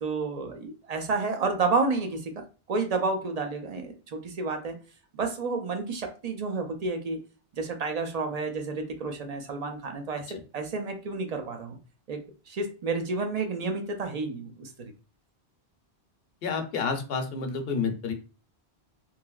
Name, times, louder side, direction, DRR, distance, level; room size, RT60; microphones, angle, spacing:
voice 1, 0.0-2.3 2.7-4.8 5.1-7.2 7.6-11.8 12.1-12.2 12.5-14.9, right 3 dB, 45° right, 5 dB, 0.5 m, -30 dB
voice 2, 16.4-18.1, left 5 dB, 65° left, 5 dB, 0.8 m, -29 dB
3.1 x 2.8 x 2.3 m, 0.34 s
omnidirectional pair, 1.1 m